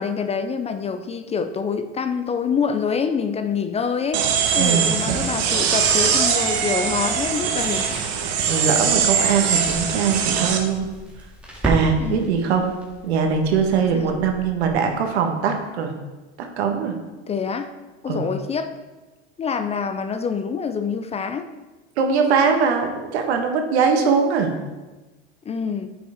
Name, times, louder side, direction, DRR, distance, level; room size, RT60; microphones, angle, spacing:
voice 1, 0.0-7.9 12.0-12.4 13.9-14.1 17.3-17.7 18.0-18.7 19.4-21.5 25.5-25.9, left 6 dB, 20° left, 9 dB, 0.5 m, -26 dB
sound 1, 4.1-10.6, right 7 dB, 50° right, 1.2 m, -21 dB
sound 2, 4.5-14.9, right 1 dB, 5° right, 2.1 m, -35 dB
voice 2, 4.6-5.0 8.5-10.9 11.6-12.7 13.0-16.0 16.4-17.0 18.1-18.3 22.0-24.5, right 6 dB, 80° right, 4 dB, 1.4 m, -21 dB
9.4 x 6.0 x 3.6 m, 1.1 s
supercardioid pair, 105°, 32 cm